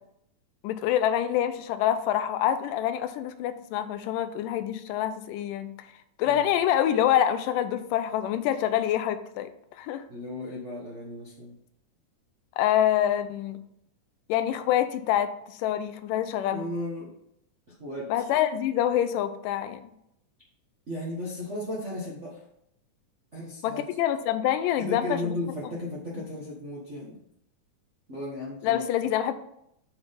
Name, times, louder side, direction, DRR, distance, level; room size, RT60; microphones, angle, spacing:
voice 1, 0.6-5.7 6.2-9.5 9.8-10.0 12.6-13.6 14.3-16.6 18.1-19.9 23.6-25.3 28.6-29.3, left 11 dB, 90° left, 11 dB, 2.2 m, -26 dB
voice 2, 10.1-11.6 16.5-17.1 17.7-18.3 20.9-22.4 23.3-23.9 24.8-27.2 28.1-28.8, left 1 dB, 55° right, -6 dB, 0.7 m, -35 dB
7.0 x 4.1 x 5.2 m, 0.76 s
omnidirectional pair, 3.8 m